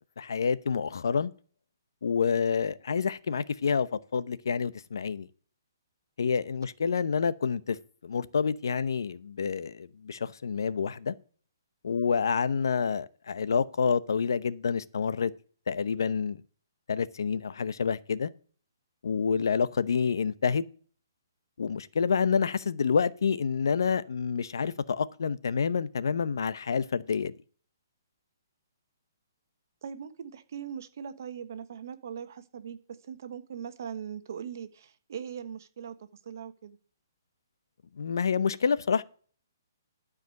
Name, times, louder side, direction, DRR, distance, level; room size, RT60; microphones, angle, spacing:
voice 1, 0.2-1.3 2.0-5.3 6.2-7.8 8.0-11.1 11.8-15.3 15.7-16.4 16.9-18.3 19.0-20.6 21.6-27.3 38.0-39.0, left 6 dB, 75° left, 0.8 m, -28 dB
voice 2, 29.8-32.8 33.0-36.8, right 8 dB, 55° right, 1.2 m, -40 dB
12.5 x 5.0 x 6.4 m
hypercardioid pair, 165°, 2 cm